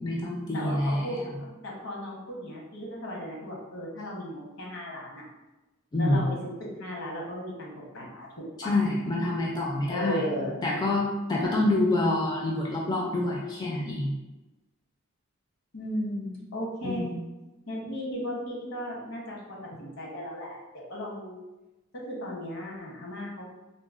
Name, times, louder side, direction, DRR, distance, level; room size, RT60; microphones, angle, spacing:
voice 1, 0.0-1.1 5.9-6.3 8.6-10.2 10.6-14.1 16.8-17.2, left 2 dB, 20° left, -3 dB, 0.3 m, -27 dB
voice 2, 0.5-5.3 6.0-8.3 8.6-8.8 9.9-10.6 15.7-17.1 17.7-20.6 20.9-21.4 21.9-23.5, equal, 75° left, -3 dB, 0.9 m, -35 dB
3.8 x 2.1 x 2.4 m, 1.1 s
head